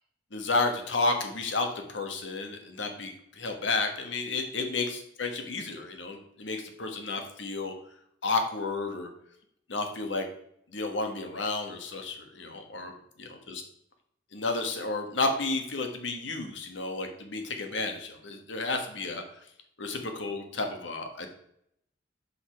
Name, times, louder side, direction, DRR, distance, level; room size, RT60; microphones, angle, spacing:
voice 1, 0.3-7.7 8.2-9.1 9.7-10.3 10.7-12.9 13.2-13.6 14.3-19.2 19.8-21.3, left 3 dB, 75° left, 5 dB, 1.3 m, -31 dB
6.7 x 5.4 x 4.5 m, 0.73 s
head